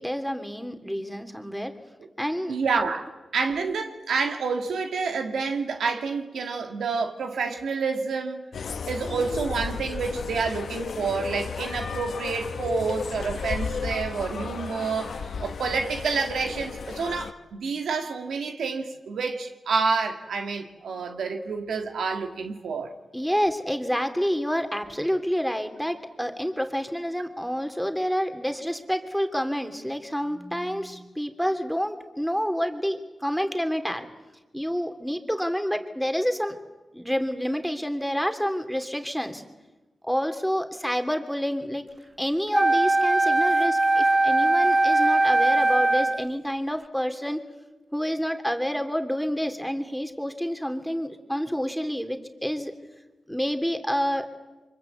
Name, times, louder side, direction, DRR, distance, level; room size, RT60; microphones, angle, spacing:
voice 1, 0.0-1.7 2.2-2.5 23.1-34.1 34.5-36.6 36.9-39.4 40.0-41.8 42.2-47.4 47.9-52.7 53.3-54.3, equal, ahead, 3.0 m, -28 dB
voice 2, 2.5-8.4 8.9-22.9, right 4 dB, 85° right, 1.8 m, -28 dB
sound 1, 8.5-17.3, left 5 dB, 75° left, 0.9 m, -33 dB
Wind instrument woodwind instrument, 42.5-46.3, right 2 dB, 25° right, 1.3 m, -21 dB
24.5 x 22.0 x 8.1 m
supercardioid pair, 40°, 0 cm